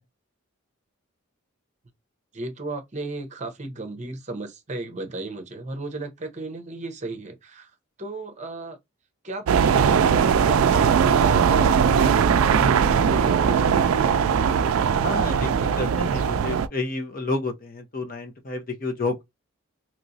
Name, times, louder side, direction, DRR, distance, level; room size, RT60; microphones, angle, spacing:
voice 1, 2.3-7.7 8.0-8.8 9.2-14.3, right 2 dB, 35° right, 0.7 m, -35 dB
sound 1, 9.5-16.7, right 7 dB, 85° right, 0.3 m, -20 dB
voice 2, 14.9-19.2, left 3 dB, 45° left, 0.7 m, -30 dB
3.0 x 2.9 x 2.6 m
head